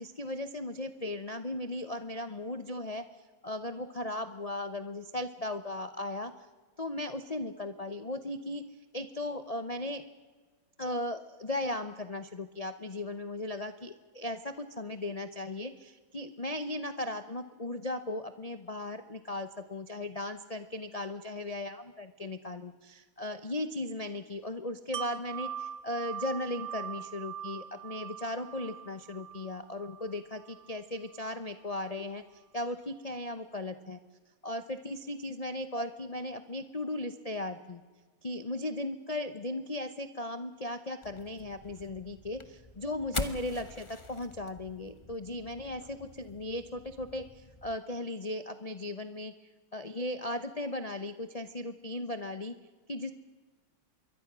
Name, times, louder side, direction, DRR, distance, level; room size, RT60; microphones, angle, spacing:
voice 1, 0.0-3.0 3.4-6.3 6.8-8.6 8.9-10.0 10.8-34.0 34.4-37.8 38.2-49.3 49.7-52.5 52.9-53.1, left 1 dB, 85° left, 9 dB, 0.3 m, -37 dB
Wind chime, 24.9-30.7 31.1-31.3, right 9 dB, 50° right, 1.2 m, -42 dB
sound 1, 41.0-47.8, left 2 dB, 20° left, 0.8 m, -44 dB
26.5 x 22.5 x 6.1 m, 1.4 s
omnidirectional pair, 2.2 m